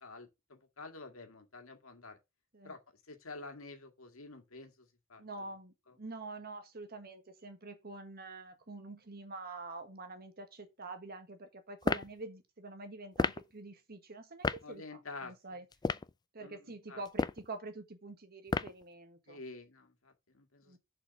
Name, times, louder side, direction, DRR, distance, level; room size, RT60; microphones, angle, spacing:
voice 1, 0.0-2.2 2.6-2.8 3.1-5.2 5.9-6.0 14.6-15.6 16.4-17.0 19.3-20.8, left 3 dB, 75° left, 2.0 m, -49 dB
voice 2, 5.2-15.6 16.3-19.4 20.6-20.8, right 3 dB, 45° right, 1.5 m, -46 dB
sound 1, 11.8-12.1 13.2-13.4 14.4-14.6 15.7-16.1 17.1-17.5 18.5-18.8, left 3 dB, 20° left, 0.4 m, -31 dB
7.0 x 5.0 x 6.3 m
head